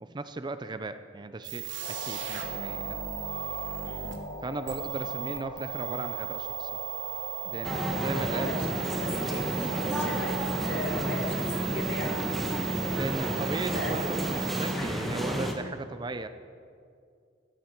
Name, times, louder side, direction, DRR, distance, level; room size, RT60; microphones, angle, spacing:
voice 1, 0.0-3.0 4.4-6.7 7.5-8.6 12.8-16.3, right 2 dB, 25° right, 10 dB, 0.4 m, -37 dB
sound 1, 1.4-14.7, right 12 dB, 70° right, 1.6 m, -37 dB
sound 2, 1.8-10.1, left 2 dB, 30° left, 1.1 m, -41 dB
voice 2, 3.8-4.1 8.1-12.2 12.8-13.5 13.7-14.2 14.8-15.2, left 1 dB, 55° left, 2 dB, 2.0 m, -38 dB
Central Station - - Output - Stereo Out, 7.6-15.5, equal, ahead, 1.4 m, -31 dB
15.0 x 14.0 x 4.5 m, 2.3 s
head